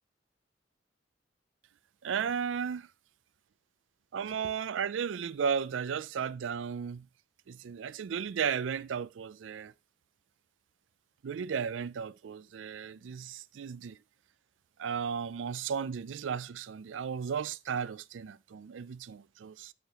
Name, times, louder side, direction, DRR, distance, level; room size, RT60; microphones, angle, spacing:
voice 1, 2.0-2.9 4.1-7.1 7.5-9.7 11.2-14.0 14.8-19.7, right 7 dB, 85° right, 0.4 m, -34 dB
12.0 x 6.5 x 3.0 m
head